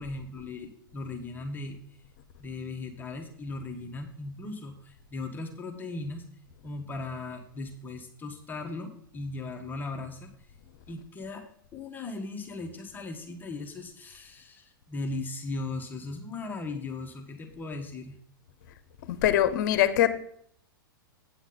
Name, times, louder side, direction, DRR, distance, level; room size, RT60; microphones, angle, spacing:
voice 1, 0.0-1.8 2.4-6.3 6.6-10.3 10.9-11.4 11.7-18.2, left 3 dB, 15° left, 1.2 m, -38 dB
voice 2, 19.1-20.1, left 12 dB, 55° left, 0.9 m, -22 dB
8.6 x 7.9 x 3.8 m
hypercardioid pair, 115°, 12 cm